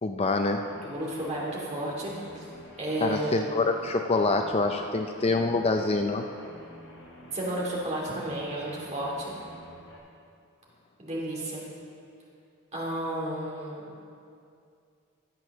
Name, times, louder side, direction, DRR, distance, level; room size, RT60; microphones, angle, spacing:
voice 1, 0.0-0.6 3.0-6.2, left 3 dB, 25° left, 5 dB, 0.4 m, -26 dB
sound 1, 0.5-10.0, equal, 70° left, 3.5 m, -49 dB
voice 2, 0.8-2.4 2.8-3.4 7.3-9.3 11.0-11.6 12.7-13.8, right 1 dB, 30° right, -5 dB, 2.7 m, -32 dB
12.0 x 7.9 x 6.7 m, 2.4 s
head